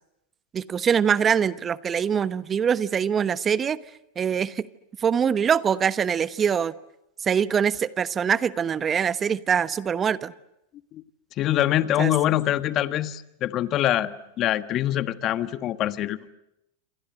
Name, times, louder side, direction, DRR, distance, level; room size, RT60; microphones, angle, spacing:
voice 1, 0.5-3.8 4.2-4.6 5.0-6.7 7.2-10.3 12.0-12.1, right 7 dB, 25° right, 15 dB, 1.1 m, -23 dB
voice 2, 11.4-16.3, left 13 dB, 40° left, 12 dB, 1.4 m, -24 dB
28.0 x 27.5 x 7.8 m, 0.85 s
hypercardioid pair, 100°, 0 cm